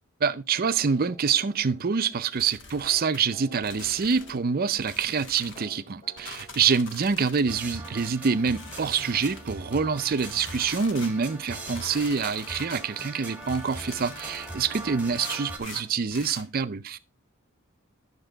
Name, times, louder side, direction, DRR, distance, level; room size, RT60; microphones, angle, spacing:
voice 1, 0.2-17.0, right 6 dB, 45° right, 0.5 m, -26 dB
sound 1, 0.7-16.0, right 1 dB, 30° left, 3.2 m, -53 dB
sound 2, 2.4-3.2 3.6-4.4 4.8-5.7 6.2-7.5 7.8-8.0 8.4-9.5 10.1-11.1 11.7-12.8 13.4-14.7 15.1-16.5, left 4 dB, 60° left, 1.4 m, -44 dB
sound 3, 7.5-15.6, right 2 dB, 10° right, 1.5 m, -40 dB
10.0 x 6.7 x 3.9 m
head